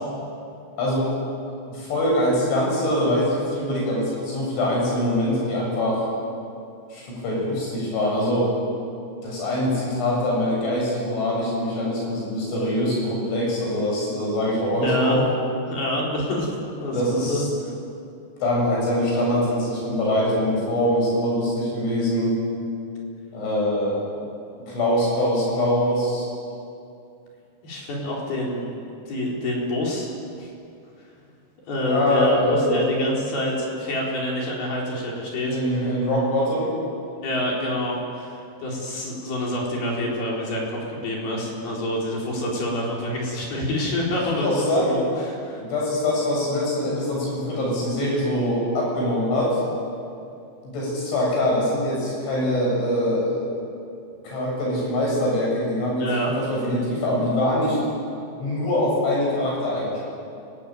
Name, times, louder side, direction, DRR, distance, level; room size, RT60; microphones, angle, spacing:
voice 1, 0.8-1.1 1.7-6.0 6.9-8.5 9.2-15.2 16.9-17.4 18.4-22.4 23.3-24.1 24.7-26.3 31.8-32.8 35.5-36.7 44.3-45.0 45.6-49.6 50.6-53.5 54.2-57.8 58.4-60.0, left 1 dB, 75° left, -3 dB, 10.0 m, -23 dB
voice 2, 14.7-15.2 15.7-17.5 27.6-28.7 29.1-30.1 30.4-30.5 31.7-35.9 37.2-45.6 56.0-56.3, left 1 dB, 55° left, -3 dB, 6.0 m, -27 dB
29.0 x 19.0 x 9.1 m, 2.5 s
omnidirectional pair, 5.4 m